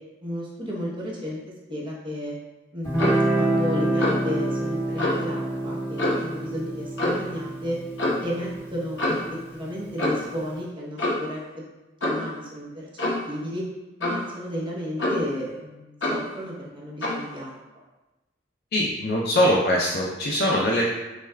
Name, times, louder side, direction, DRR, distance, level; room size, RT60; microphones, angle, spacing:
voice 1, 0.2-1.4 1.7-2.3 2.7-7.8 8.2-11.6 12.0-12.9 13.3-13.6 14.0-17.5, equal, 25° right, -5 dB, 0.9 m, -33 dB
Guitar, 2.8-10.0, right 1 dB, 25° left, 1.1 m, -27 dB
Clock, 3.0-3.3 4.0-4.3 5.0-5.2 6.0-6.3 7.0-7.3 8.0-8.2 9.0-9.3 10.0-10.3 11.0-11.3 12.0-12.3 13.0-13.3 14.0-14.3 15.0-15.4 16.0-16.3 17.0-17.2, left 1 dB, 90° left, 0.9 m, -26 dB
voice 2, 18.7-20.9, equal, 55° left, -3 dB, 0.5 m, -22 dB
6.3 x 2.3 x 2.3 m, 1.1 s
head